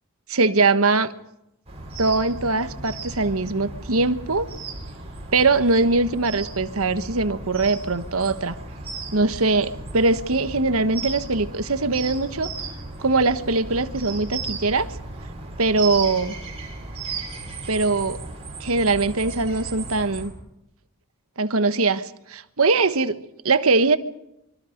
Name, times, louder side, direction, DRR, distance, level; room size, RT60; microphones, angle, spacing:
voice 1, 0.3-1.1 2.0-4.5 5.3-8.6 9.1-12.5 13.0-14.9 15.6-16.4 17.7-18.2 18.6-20.3 21.4-24.0, right 3 dB, 75° right, 11 dB, 1.3 m, -21 dB
sound 1, 1.7-20.3, right 3 dB, 30° right, 6.3 m, -35 dB
25.5 x 24.5 x 5.2 m, 0.85 s
head